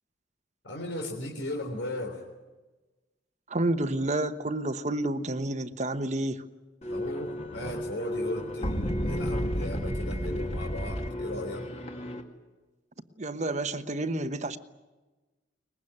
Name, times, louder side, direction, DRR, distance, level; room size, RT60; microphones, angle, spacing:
voice 1, 0.6-2.2 6.9-11.6, left 1 dB, 80° left, 1 dB, 3.8 m, -36 dB
voice 2, 3.5-6.4 13.2-14.6, right 1 dB, 40° right, 10 dB, 1.1 m, -29 dB
sound 1, 6.8-12.2, equal, 35° left, 2.2 m, -32 dB
23.0 x 21.0 x 9.8 m, 1.2 s
head